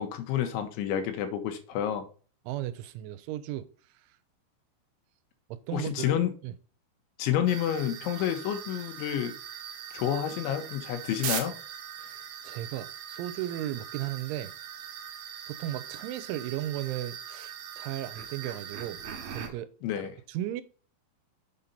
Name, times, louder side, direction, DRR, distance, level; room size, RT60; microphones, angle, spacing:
voice 1, 0.0-2.1 5.7-6.3 7.2-9.3 9.9-11.5 19.8-20.1, left 10 dB, 85° left, 3.3 m, -29 dB
voice 2, 2.5-3.7 5.5-6.5 12.0-14.5 15.5-19.0 19.3-19.7 20.3-20.6, right 13 dB, 90° right, 3.1 m, -35 dB
sound 1, 7.5-19.5, right 9 dB, 70° right, 2.4 m, -40 dB
7.5 x 5.3 x 4.2 m
omnidirectional pair, 5.4 m